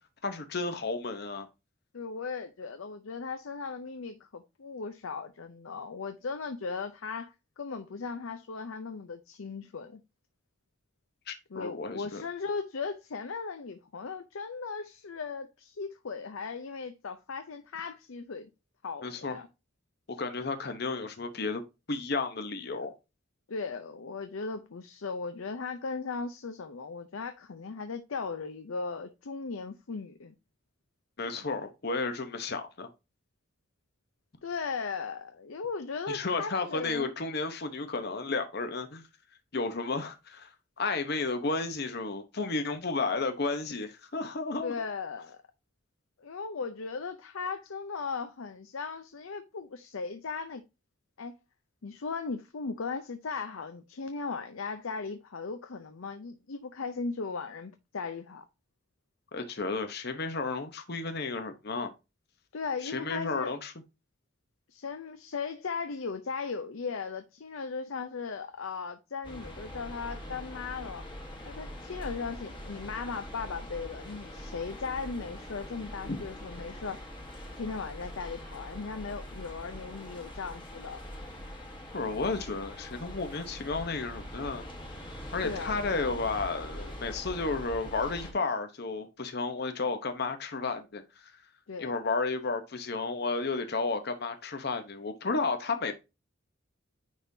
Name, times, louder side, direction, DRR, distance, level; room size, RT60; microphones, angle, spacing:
voice 1, 0.2-1.5 11.3-12.2 19.0-19.4 20.1-21.6 21.9-22.9 31.2-32.9 36.1-39.0 39.5-40.5 40.8-44.7 59.3-61.9 62.8-63.7 76.1-76.2 81.9-84.6 85.3-91.0 91.8-95.9, left 3 dB, 50° left, 0.8 m, -32 dB
voice 2, 1.9-10.0 11.5-18.5 18.8-19.5 23.5-30.3 34.4-37.1 44.6-45.4 46.2-50.6 51.2-51.3 51.8-58.4 62.5-63.5 64.7-71.0 71.4-77.0 77.6-81.0 85.4-85.8 91.7-91.9, left 4 dB, 80° left, 0.6 m, -37 dB
sound 1, 69.2-88.3, equal, 25° left, 1.3 m, -43 dB
9.8 x 3.7 x 2.7 m
head